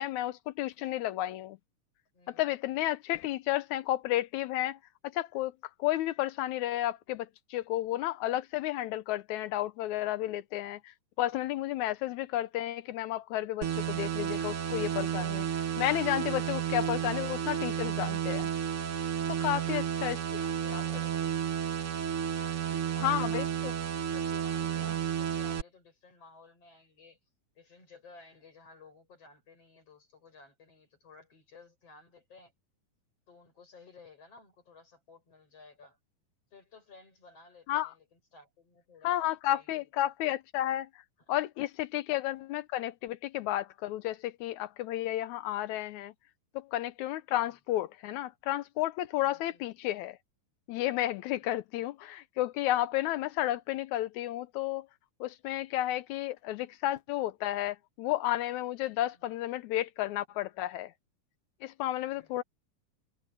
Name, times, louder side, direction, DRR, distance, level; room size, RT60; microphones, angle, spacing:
voice 1, 0.0-1.6 2.3-18.5 19.3-20.2 20.7-20.8 23.0-23.7 37.7-37.9 39.0-40.9 41.3-46.1 46.5-50.2 50.7-54.9 55.2-60.9 61.6-62.4, left 14 dB, 80° left, 1.8 m, -32 dB
voice 2, 2.1-2.4 19.4-22.0 22.3-23.0 24.1-27.2 27.5-32.5 33.3-36.0 36.5-39.9 47.3-47.5 49.2-49.6 51.2-51.5 59.1-59.2 62.0-62.3, left 3 dB, 45° left, 8.4 m, -56 dB
sound 1, 13.6-25.6, right 9 dB, 55° right, 1.7 m, -32 dB
omnidirectional pair, 3.9 m